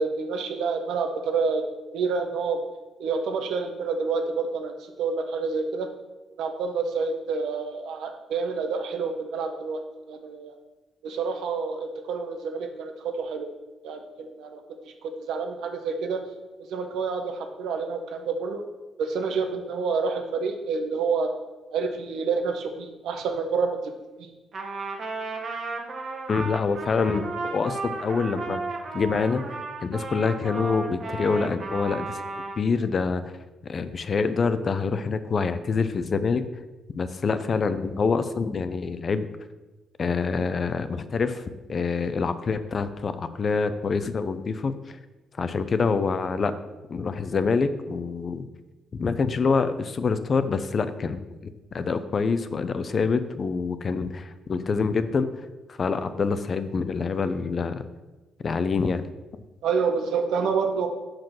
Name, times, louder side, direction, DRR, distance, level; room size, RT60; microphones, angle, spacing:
voice 1, 0.0-1.7 1.9-2.6 3.0-4.7 5.0-5.9 6.4-9.8 10.1-10.6 11.0-13.5 13.8-16.2 16.7-18.6 19.0-21.3 21.7-23.8 24.2-24.3 59.6-60.9, right 5 dB, 80° right, 5 dB, 1.0 m, -28 dB
Trumpet, 24.5-32.6, right 3 dB, 50° right, 1.2 m, -34 dB
voice 2, 26.3-28.6 28.9-29.4 29.8-32.2 32.6-33.2 33.7-36.4 37.0-39.3 40.0-41.4 41.7-44.7 45.4-46.5 46.9-48.5 49.0-55.3 55.7-57.8 58.4-59.0, left 5 dB, 45° left, 11 dB, 0.5 m, -26 dB
5.8 x 5.2 x 5.9 m, 1.1 s
cardioid pair, 90°, 0 cm